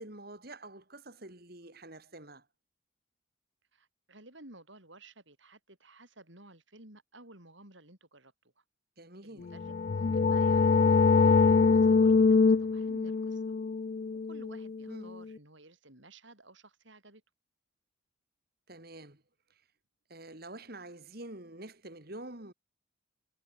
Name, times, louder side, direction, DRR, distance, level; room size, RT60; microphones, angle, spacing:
voice 1, 0.0-2.4 9.0-9.5 14.9-15.1 18.7-19.2 19.5-19.6 20.1-22.5, right 2 dB, 50° right, 3.2 m, -47 dB
voice 2, 3.7-8.6 9.2-13.4 14.2-17.2, right 2 dB, 65° right, 7.4 m, -55 dB
sound 1, 9.5-15.1, left 4 dB, 40° left, 0.3 m, -24 dB
head